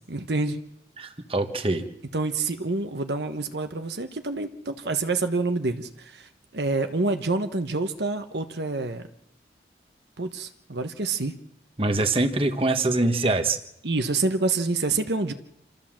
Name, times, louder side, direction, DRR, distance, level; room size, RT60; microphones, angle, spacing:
voice 1, 0.1-0.6 2.1-9.0 10.2-11.3 13.8-15.3, right 3 dB, 70° right, 8 dB, 1.2 m, -27 dB
voice 2, 1.0-1.8 11.8-13.6, right 2 dB, 30° right, 6 dB, 1.4 m, -24 dB
27.0 x 13.5 x 7.5 m, 0.77 s
head